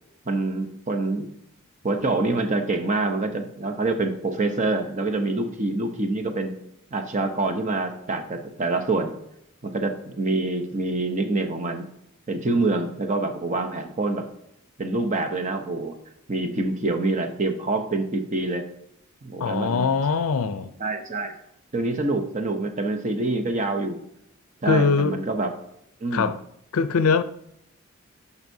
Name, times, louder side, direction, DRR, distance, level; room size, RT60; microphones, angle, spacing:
voice 1, 0.3-1.3 1.8-6.5 6.9-9.1 9.6-11.9 12.3-14.3 14.8-16.0 16.3-18.7 19.2-19.8 20.8-21.3 21.7-24.0 24.6-25.5 26.0-26.3, right 2 dB, 35° right, 0.8 m, -26 dB
voice 2, 19.4-20.7 24.7-25.2 26.1-26.4 26.7-27.2, left 5 dB, 75° left, 0.5 m, -22 dB
10.5 x 5.4 x 2.7 m
head